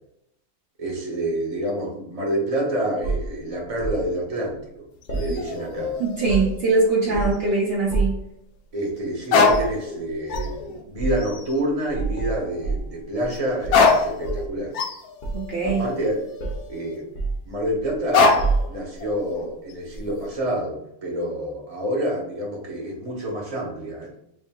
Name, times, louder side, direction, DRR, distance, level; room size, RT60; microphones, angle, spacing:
voice 1, 0.8-4.8 5.1-5.9 7.0-7.2 8.7-14.7 15.6-16.2 16.7-17.0 17.5-18.4 18.7-24.1, right 1 dB, 30° right, -3 dB, 0.7 m, -28 dB
sound 1, 3.0-4.0 5.1-5.8 6.1-6.7 7.1-7.5 7.9-8.3 9.4-9.7 10.3-10.5 11.0-11.2 11.9-13.3 13.6-14.6 15.2-16.1 16.4-16.7 17.1-18.0 18.4-19.0 19.9-20.1, right 3 dB, 45° left, 0.6 m, -28 dB
sound 2, 5.0-7.0 7.3-7.4 9.2-10.0 10.3-10.8 11.2-11.5 13.3-13.4 13.7-17.0 18.1-18.7 19.0-19.7, left 4 dB, 70° left, 0.8 m, -24 dB
voice 2, 6.0-8.2 15.3-15.8, right 3 dB, 70° right, -5 dB, 0.5 m, -22 dB
3.7 x 2.7 x 3.6 m, 0.79 s
omnidirectional pair, 2.1 m